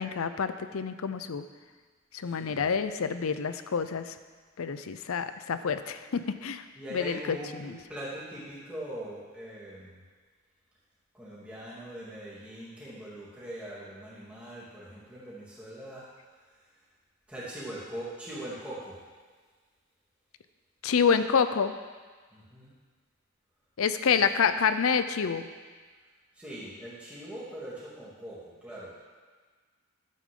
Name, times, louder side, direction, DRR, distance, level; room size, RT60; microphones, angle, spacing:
voice 1, 0.0-1.4 2.1-4.1 4.6-6.6 6.9-7.8 20.8-21.7 23.8-25.5, left 6 dB, 80° left, 11 dB, 0.5 m, -28 dB
voice 2, 2.2-2.7 6.7-10.0 11.1-16.0 17.3-19.0 22.3-22.7 24.1-24.2 26.3-29.0, right 1 dB, 5° right, -9 dB, 2.8 m, -41 dB
12.5 x 8.4 x 3.8 m, 1.5 s
head